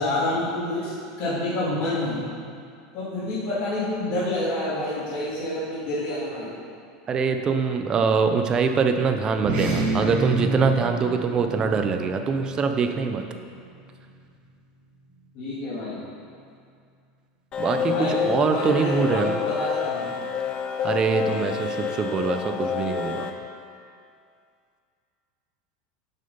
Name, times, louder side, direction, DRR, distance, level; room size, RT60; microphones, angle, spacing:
voice 1, 0.0-2.2 2.9-6.5 15.3-16.0 17.8-20.1, left 1 dB, 45° left, -11 dB, 2.2 m, -28 dB
voice 2, 7.1-13.2 17.6-19.3 20.8-23.3, right 5 dB, 25° right, 6 dB, 0.5 m, -24 dB
sound 1, 9.3-14.1, right 2 dB, 40° right, 1.7 m, -30 dB
sound 2, 17.5-23.3, left 7 dB, 30° left, 0.6 m, -28 dB
7.5 x 5.4 x 5.4 m, 2.3 s
supercardioid pair, 155°, 3 cm